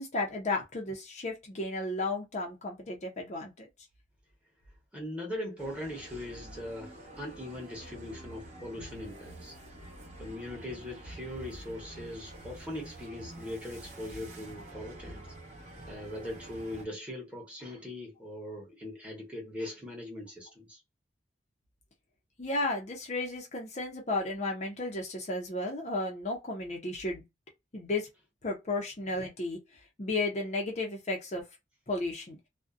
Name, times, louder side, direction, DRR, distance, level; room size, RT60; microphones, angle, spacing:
voice 1, 0.0-3.7 22.4-27.2 27.7-28.1 28.4-29.6 30.0-31.4 31.9-32.4, left 2 dB, 40° left, 0.6 m, -33 dB
voice 2, 4.9-9.6 10.2-15.3 15.9-20.8, left 1 dB, 5° right, 1.0 m, -40 dB
sound 1, 5.6-16.9, right 1 dB, 35° right, 0.9 m, -47 dB
2.5 x 2.1 x 2.4 m
head